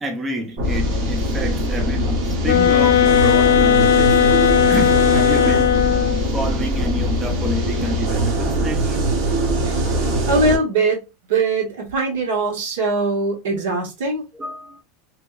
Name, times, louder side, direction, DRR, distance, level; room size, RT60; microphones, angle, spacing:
voice 1, 0.0-9.1 14.3-14.8, right 1 dB, 10° right, 0.4 m, -29 dB
sound 1, 0.6-10.6, right 1 dB, 40° right, 0.9 m, -21 dB
sound 2, 2.4-6.3, left 10 dB, 75° left, 0.4 m, -16 dB
voice 2, 10.3-11.0 11.3-14.3, right 3 dB, 75° right, 1.5 m, -21 dB
2.8 x 2.8 x 2.4 m
supercardioid pair, 175°, 0 cm